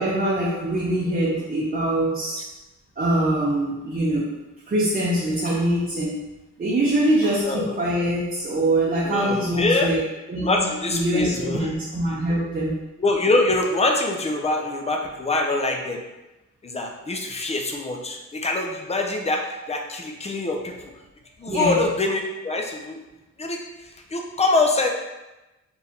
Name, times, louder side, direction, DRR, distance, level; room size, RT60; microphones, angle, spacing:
voice 1, 0.0-2.4 3.0-4.3 4.7-6.2 6.6-10.0 10.3-10.6 10.9-12.8 21.4-21.8, right 1 dB, 30° right, -5 dB, 0.7 m, -23 dB
voice 2, 9.0-9.9 10.4-11.7 12.1-12.2 13.0-16.0 16.6-20.9 21.4-23.0 23.4-24.9, left 2 dB, 20° left, 2 dB, 0.5 m, -24 dB
4.3 x 3.3 x 2.9 m, 1.0 s
wide cardioid pair, 120°, 30 cm